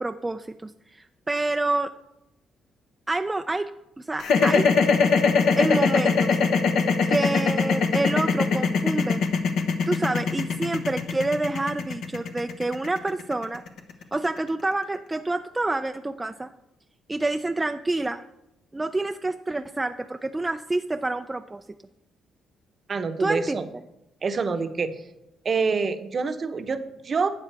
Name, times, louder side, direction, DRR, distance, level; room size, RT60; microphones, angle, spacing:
voice 1, 0.0-1.9 3.1-4.7 5.6-6.4 7.1-9.2 9.9-13.6 14.1-16.5 17.1-18.2 18.7-21.6 23.2-23.6, right 2 dB, 15° right, 7 dB, 0.4 m, -28 dB
sound 1, 4.2-14.4, left 5 dB, 75° left, 1.0 m, -21 dB
voice 2, 22.9-23.7 24.2-25.0 25.4-27.3, right 4 dB, 40° right, 9 dB, 0.8 m, -26 dB
12.0 x 8.3 x 3.4 m, 0.90 s
cardioid pair, 90°, 0 cm